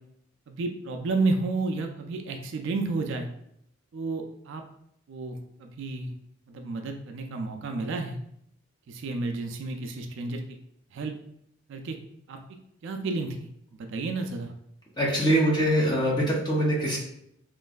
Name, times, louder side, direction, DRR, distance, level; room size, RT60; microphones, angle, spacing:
voice 1, 0.5-3.3 3.9-4.6 5.1-6.1 6.5-8.2 8.9-10.4 10.9-11.1 11.7-12.0 12.3-12.4 12.8-14.5, right 3 dB, 60° right, 4 dB, 0.3 m, -31 dB
voice 2, 15.0-17.0, right 1 dB, 20° left, -3 dB, 0.6 m, -23 dB
3.0 x 2.5 x 2.3 m, 0.73 s
head